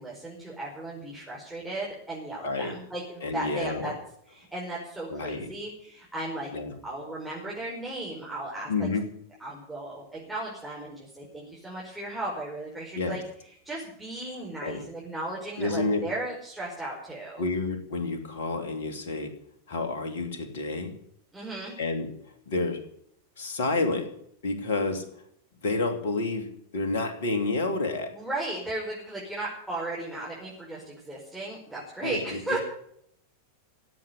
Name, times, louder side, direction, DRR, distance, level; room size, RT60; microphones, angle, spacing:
voice 1, 0.0-3.9 4.3-6.5 6.8-8.9 9.4-13.2 13.6-17.4 21.3-21.8 28.1-32.6, right 2 dB, 5° right, -5 dB, 5.2 m, -36 dB
voice 2, 2.4-2.7 3.2-4.0 5.1-5.5 6.5-6.7 8.7-9.1 12.9-13.2 14.6-14.8 15.6-16.0 17.4-19.4 19.7-20.9 21.8-22.1 22.5-22.8 23.4-24.1 24.4-25.1 25.6-28.1 32.0-32.6, left 3 dB, 55° left, 7 dB, 2.8 m, -29 dB
16.5 x 8.4 x 9.7 m, 0.68 s
figure-of-eight pair, 90°, 0 cm